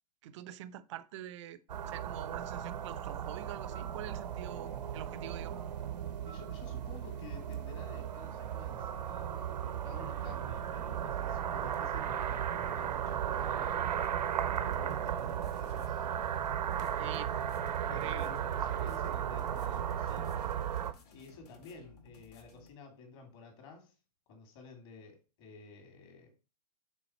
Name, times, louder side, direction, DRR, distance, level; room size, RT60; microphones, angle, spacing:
voice 1, 0.2-1.6 1.9-5.6 16.9-17.4 18.0-18.3, right 12 dB, 45° right, 0.5 m, -45 dB
sound 1, 1.7-20.9, right 9 dB, 80° right, 0.7 m, -35 dB
voice 2, 6.2-13.8 14.5-16.0 17.9-20.4 21.1-23.9 24.3-26.3, left 4 dB, 40° left, 2.4 m, -52 dB
sound 2, 13.8-22.7, left 3 dB, 70° left, 1.9 m, -58 dB
6.2 x 3.9 x 4.2 m
hypercardioid pair, 140°, 21 cm